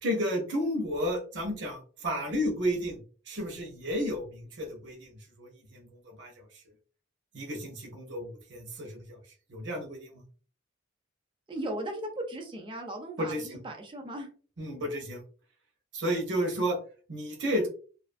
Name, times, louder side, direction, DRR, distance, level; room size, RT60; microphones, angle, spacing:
voice 1, 0.0-3.0 3.3-6.3 7.3-9.2 9.5-10.2 13.2-13.6 14.6-15.2 15.9-16.8 17.1-17.7, equal, 60° right, 1 dB, 0.8 m, -32 dB
voice 2, 11.5-13.3 13.6-14.3, right 1 dB, 25° right, 3 dB, 0.5 m, -36 dB
2.5 x 2.4 x 2.5 m, 0.40 s
head